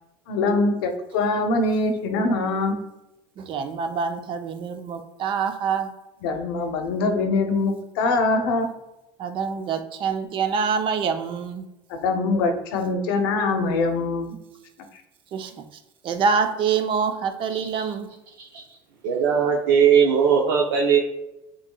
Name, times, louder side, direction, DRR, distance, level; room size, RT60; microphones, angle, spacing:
voice 1, 0.3-2.8 6.2-8.7 11.9-14.4, left 3 dB, 85° left, 5 dB, 0.7 m, -23 dB
voice 2, 3.4-5.9 9.2-11.7 15.3-15.6 16.0-18.1, right 6 dB, 45° right, 7 dB, 0.6 m, -25 dB
voice 3, 17.5-17.9 18.4-18.6 19.0-21.0, right 7 dB, 85° right, -2 dB, 0.6 m, -19 dB
7.1 x 3.0 x 2.3 m, 0.93 s
supercardioid pair, 110°, 11 cm